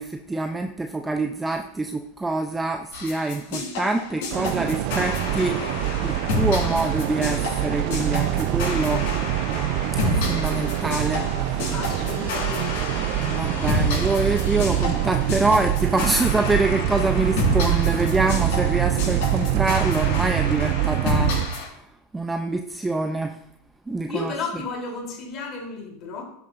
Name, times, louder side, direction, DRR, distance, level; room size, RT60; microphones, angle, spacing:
voice 1, 0.0-9.1 10.0-11.7 13.2-21.7 22.1-23.4 23.9-24.7, right 2 dB, 10° right, 6 dB, 0.7 m, -26 dB
sound 1, 2.9-21.7, left 3 dB, 60° left, 5.0 m, -30 dB
sound 2, 4.3-21.5, right 14 dB, 50° right, 0.7 m, -25 dB
sound 3, 5.3-17.3, left 3 dB, 80° left, 4.6 m, -45 dB
voice 2, 11.7-13.1 24.1-26.2, left 4 dB, 40° left, 0 dB, 3.6 m, -33 dB
16.5 x 9.1 x 2.7 m, 0.75 s
figure-of-eight pair, 85°, 0 cm